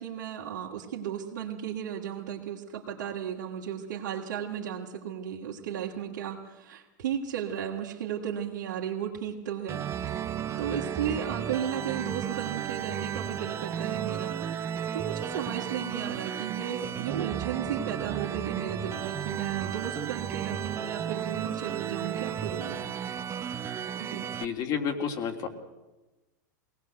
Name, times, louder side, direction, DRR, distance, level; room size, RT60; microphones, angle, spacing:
voice 1, 0.0-14.4 14.9-22.9 24.0-24.3, right 9 dB, 75° right, -5 dB, 2.6 m, -35 dB
sound 1, 9.7-24.5, right 9 dB, 25° right, 1.1 m, -34 dB
voice 2, 24.4-25.5, left 7 dB, 45° left, 3 dB, 3.3 m, -30 dB
21.5 x 18.5 x 8.0 m, 1.1 s
hypercardioid pair, 110°, 10 cm